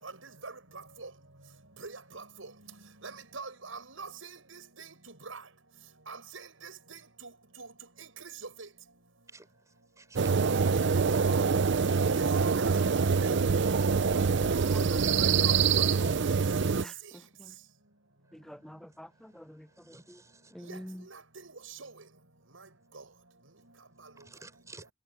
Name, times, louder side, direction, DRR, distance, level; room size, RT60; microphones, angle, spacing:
voice 1, 0.0-1.1 1.8-2.5 3.0-5.5 6.1-7.3 7.6-7.7 8.0-8.7 12.2-13.4 14.9-15.9 16.3-16.7 17.1-17.2 20.6-21.9 22.9-23.0 24.0-24.3, right 4 dB, 75° right, 6.2 m, -45 dB
sound 1, 10.2-16.8, right 5 dB, 60° right, 0.6 m, -25 dB
voice 2, 14.4-15.0 15.3-15.4 17.4-17.5 18.3-20.2 20.5-21.0, equal, ahead, 0.3 m, -47 dB
voice 3, 19.8-20.6 24.2-24.9, right 3 dB, 15° right, 6.4 m, -53 dB
head